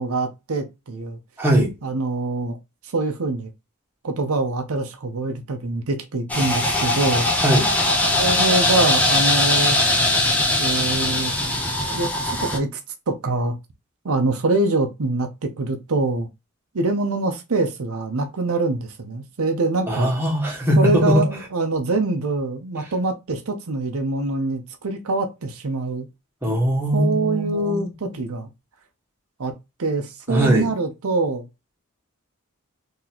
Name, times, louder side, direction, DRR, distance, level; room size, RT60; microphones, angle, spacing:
voice 1, 0.0-1.2 1.8-2.6 2.9-3.5 4.0-7.3 8.2-9.8 10.6-11.3 11.9-12.8 13.1-13.6 14.0-16.3 16.7-20.1 20.8-26.1 26.9-28.5 29.4-29.5 29.8-31.4, right 2 dB, 75° right, 0.6 m, -24 dB
voice 2, 1.4-1.7 7.4-7.7 19.9-21.2 26.4-28.1 30.3-30.7, equal, 10° right, 1.3 m, -20 dB
sound 1, 6.3-12.6, left 2 dB, 5° left, 0.8 m, -20 dB
Scratching (performance technique), 6.7-7.3 7.8-7.9 8.2-9.3 9.6-10.3, left 3 dB, 45° left, 1.0 m, -38 dB
3.9 x 2.9 x 2.9 m
head